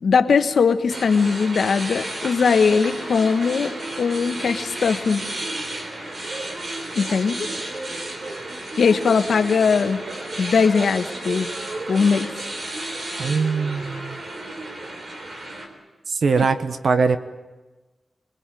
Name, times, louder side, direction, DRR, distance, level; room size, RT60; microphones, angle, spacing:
voice 1, 0.0-3.7 4.0-5.2 6.9-7.4 8.8-10.0 10.4-11.5 11.9-12.3, left 5 dB, 70° left, 9 dB, 1.3 m, -20 dB
sound 1, 0.9-15.7, right 1 dB, 45° right, 4.0 m, -32 dB
voice 2, 13.2-14.2 16.1-17.2, right 4 dB, 70° right, 10 dB, 1.3 m, -21 dB
25.5 x 22.0 x 9.1 m, 1.2 s
wide cardioid pair, 170°, 0 cm